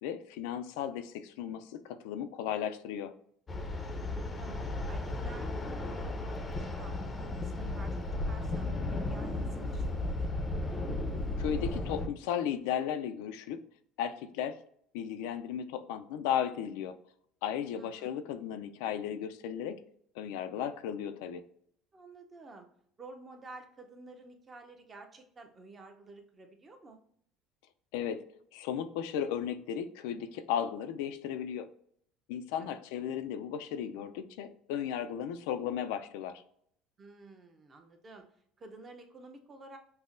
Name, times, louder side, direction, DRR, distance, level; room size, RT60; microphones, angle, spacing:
voice 1, 0.0-3.1 11.4-13.6 14.0-14.6 14.9-16.9 17.4-19.8 20.2-21.4 27.9-28.2 28.5-31.6 32.3-36.3, left 9 dB, 85° left, 9 dB, 0.3 m, -35 dB
sound 1, 3.5-12.1, left 2 dB, 20° left, 0.5 m, -35 dB
voice 2, 3.9-4.6 4.9-10.3 17.8-18.2 21.9-22.7 23.0-27.0 32.6-32.8 37.0-38.3 38.6-39.8, right 3 dB, 30° right, 5 dB, 0.7 m, -51 dB
5.3 x 2.1 x 2.5 m, 0.65 s
supercardioid pair, 110°, 0 cm